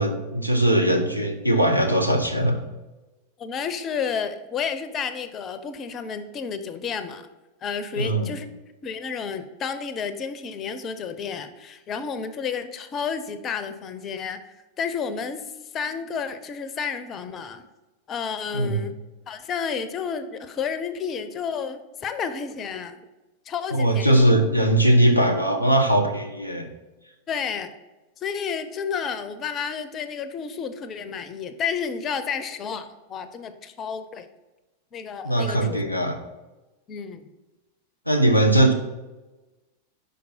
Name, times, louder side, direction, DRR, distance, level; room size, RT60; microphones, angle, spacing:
voice 1, 0.0-2.6 7.9-8.3 18.5-18.8 23.8-26.7 35.2-36.2 38.1-38.7, right 1 dB, 90° right, 4 dB, 0.7 m, -20 dB
voice 2, 3.4-7.3 7.6-8.5 8.8-14.4 14.8-15.4 15.7-17.6 18.1-18.9 19.3-23.0 23.5-24.2 27.3-27.7 28.2-34.3 34.9-35.8 36.9-37.3, left 6 dB, 30° left, 11 dB, 0.5 m, -31 dB
5.2 x 5.2 x 4.4 m, 1.1 s
figure-of-eight pair, 90°, 0 cm